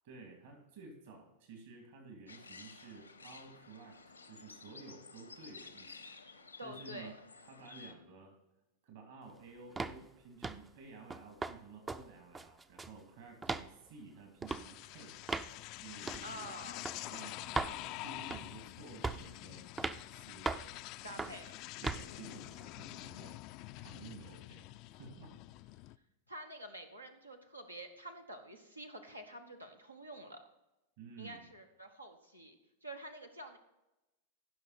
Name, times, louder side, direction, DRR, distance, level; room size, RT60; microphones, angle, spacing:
voice 1, 0.0-7.1 7.4-8.4 8.8-16.5 16.9-19.7 20.1-20.6 21.0-21.3 21.8-25.8 31.0-31.5, right 4 dB, 55° right, 3 dB, 2.5 m, -53 dB
sound 1, 2.3-7.9, left 4 dB, 80° left, 1.0 m, -53 dB
voice 2, 6.6-7.1 16.2-16.9 21.0-22.1 26.3-30.4 31.2-33.6, right 1 dB, 85° right, 4 dB, 1.4 m, -48 dB
sound 2, 9.8-10.0 10.4-10.7 11.1-11.6 11.9-12.0 12.4-13.0 13.4-13.7 14.4-14.6 15.3-15.5 16.1-16.3 16.9-17.0 17.6-17.8 18.3-18.6 19.0-19.3 19.8-20.0 20.5-20.7 21.2-21.4 21.8-22.1, right 3 dB, 15° right, 0.5 m, -37 dB
sound 3, 14.5-26.0, left 17 dB, 40° left, 0.4 m, -47 dB
15.5 x 6.2 x 4.3 m, 0.97 s
figure-of-eight pair, 90°, 0 cm